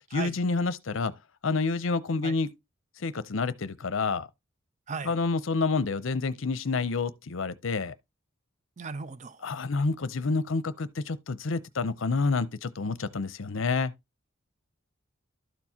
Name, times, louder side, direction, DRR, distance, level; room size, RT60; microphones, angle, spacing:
voice 1, 0.1-1.1 1.4-2.5 3.0-4.3 5.0-7.9 9.4-13.9, left 4 dB, 65° left, 0.6 m, -28 dB
voice 2, 8.8-9.4, right 4 dB, 35° right, 0.5 m, -36 dB
12.5 x 4.5 x 2.8 m
head